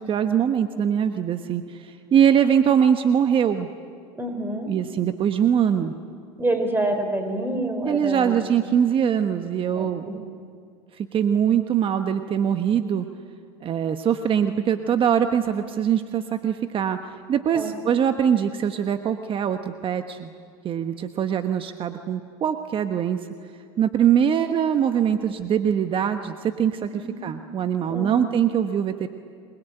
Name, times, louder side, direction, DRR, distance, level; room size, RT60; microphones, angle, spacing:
voice 1, 0.0-3.7 4.7-5.9 7.8-10.2 10.9-13.1 13.6-20.3 20.6-23.2 23.8-29.1, right 8 dB, 40° right, 8 dB, 1.2 m, -22 dB
voice 2, 4.2-4.7 6.4-8.4 9.7-10.2 17.5-17.7 26.9-27.3 27.9-28.3, right 1 dB, 15° right, 6 dB, 5.2 m, -27 dB
27.0 x 22.0 x 9.2 m, 2.2 s
hypercardioid pair, 85°, 13 cm